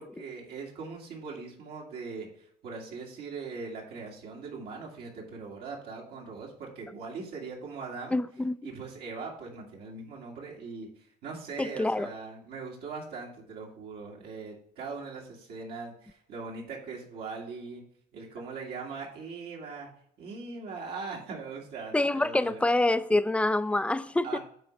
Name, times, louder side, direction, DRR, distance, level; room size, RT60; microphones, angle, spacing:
voice 1, 0.0-2.3 2.6-8.2 8.6-17.8 18.1-19.9 20.2-22.6 24.2-24.4, right 4 dB, 75° right, 2.0 m, -40 dB
voice 2, 8.1-8.6 11.6-12.1 21.9-24.4, left 2 dB, 5° left, 0.4 m, -26 dB
9.1 x 3.2 x 5.9 m
cardioid pair, 110°, 17 cm